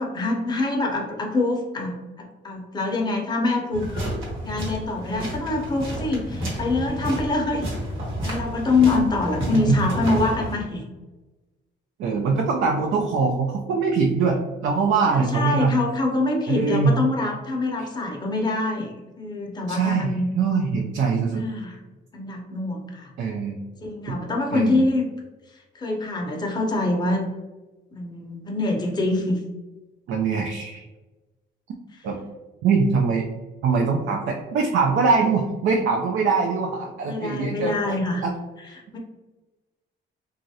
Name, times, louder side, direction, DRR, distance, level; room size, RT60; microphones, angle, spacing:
voice 1, 0.0-3.9 4.4-7.7 8.2-10.8 15.1-20.3 21.3-21.8 22.1-23.1 23.8-25.0 25.7-27.3 27.9-29.4 37.0-38.2 38.9-39.0, left 2 dB, 20° left, 0 dB, 0.6 m, -25 dB
sound 1, 3.7-10.5, equal, 85° right, 1.1 m, -31 dB
voice 2, 12.0-15.8 16.5-17.0 17.8-17.9 19.7-21.5 23.2-23.6 24.1-24.2 24.5-24.8 30.1-30.8 32.0-32.2 32.6-33.3 33.6-37.7 38.2-38.3, right 4 dB, 70° right, 1 dB, 0.4 m, -22 dB
3.0 x 2.4 x 2.7 m, 1.1 s
cardioid pair, 90°, 20 cm